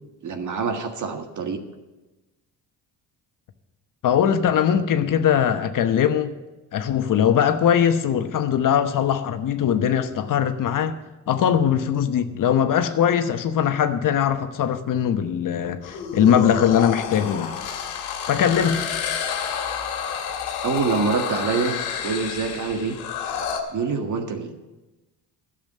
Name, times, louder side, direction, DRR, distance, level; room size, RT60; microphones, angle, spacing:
voice 1, 0.2-1.6 20.6-23.0 23.7-24.6, right 5 dB, 50° right, 1.7 m, -26 dB
voice 2, 4.0-6.3 6.7-11.0 11.3-17.5 18.3-18.8, left 8 dB, 55° left, 1.0 m, -21 dB
sound 1, 15.8-23.6, left 7 dB, 80° left, 1.8 m, -29 dB
12.0 x 7.4 x 7.5 m
supercardioid pair, 75°, 39 cm